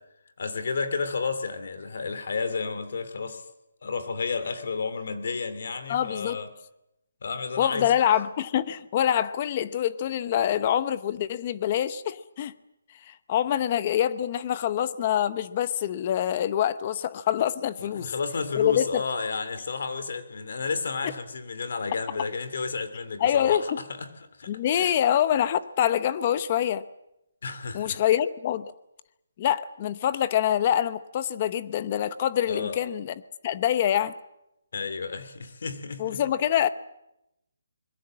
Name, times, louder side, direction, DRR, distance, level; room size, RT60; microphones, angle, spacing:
voice 1, 0.4-3.4 3.8-6.5 7.2-7.9 17.8-24.1 24.4-24.9 27.4-28.0 32.5-32.8 34.7-36.2, left 4 dB, 50° left, 10 dB, 2.8 m, -32 dB
voice 2, 5.9-6.4 7.6-12.5 13.0-18.1 18.5-19.0 23.2-23.8 24.5-26.8 27.7-28.7 29.4-33.1 33.4-34.1 36.0-36.7, left 10 dB, 25° left, 14 dB, 0.8 m, -25 dB
26.0 x 21.5 x 7.6 m, 0.85 s
hypercardioid pair, 175°, 0 cm